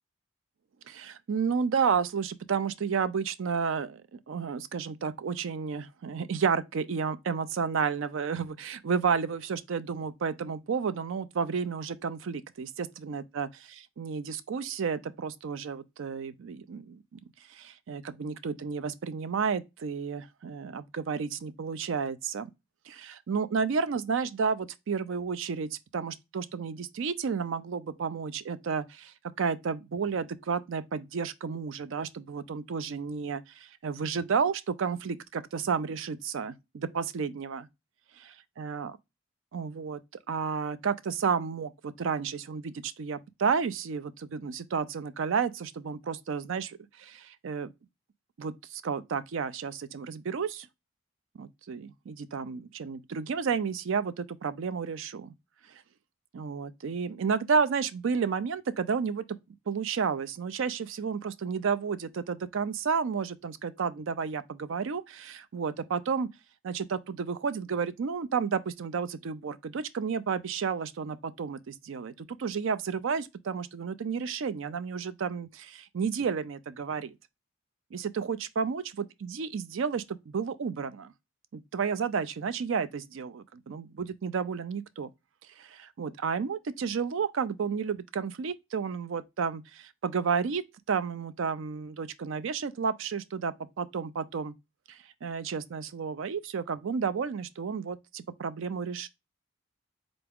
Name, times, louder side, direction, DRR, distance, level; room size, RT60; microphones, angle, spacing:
voice 1, 0.9-17.0 17.5-22.5 22.9-37.7 38.6-39.0 39.5-40.0 40.3-47.7 48.4-50.7 51.4-55.3 56.3-59.2 59.7-66.3 66.6-77.1 77.9-81.1 81.5-85.1 85.6-90.6 90.9-94.5 94.9-99.1, right 6 dB, 65° right, 0.4 m, -31 dB
3.9 x 3.4 x 3.5 m
head